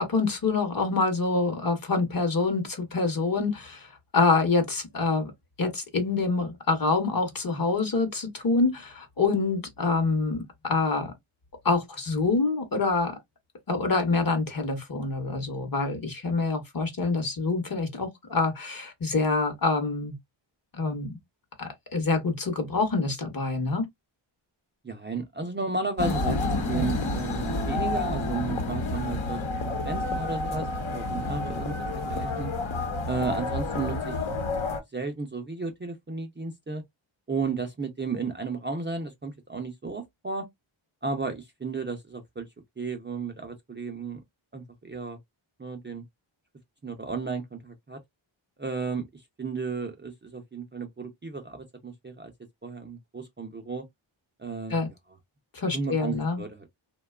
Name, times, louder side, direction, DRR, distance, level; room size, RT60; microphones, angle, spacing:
voice 1, 0.0-3.9 4.1-5.3 5.6-11.1 11.6-13.1 13.7-20.1 20.7-21.2 21.6-23.9 54.7-54.9 55.5-56.4, left 3 dB, 45° left, 0.9 m, -26 dB
voice 2, 24.8-32.5 33.0-34.2 34.6-36.8 37.3-40.5 41.0-42.5 42.8-44.2 44.5-45.2 45.6-46.0 46.8-48.0 48.6-52.3 52.6-53.8 54.4-54.8 55.7-56.7, right 4 dB, 25° right, 0.4 m, -33 dB
sound 1, 26.0-34.8, left 2 dB, 75° left, 0.9 m, -29 dB
2.8 x 2.2 x 2.2 m
wide cardioid pair, 95°, 49 cm